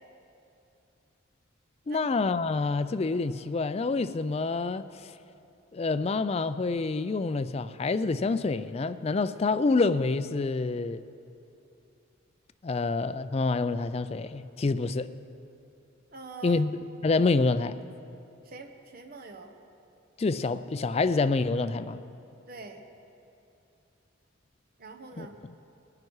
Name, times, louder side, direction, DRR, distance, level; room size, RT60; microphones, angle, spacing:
voice 1, 1.9-5.1 5.7-11.0 12.6-15.1 16.4-16.7 17.0-17.8 20.2-22.0 25.2-25.5, left 3 dB, 30° left, 12 dB, 0.3 m, -27 dB
voice 2, 16.1-16.7 18.4-19.5 22.5-22.8 24.8-25.3, right 4 dB, 45° right, 5 dB, 1.0 m, -44 dB
21.0 x 9.6 x 4.8 m, 2.8 s
head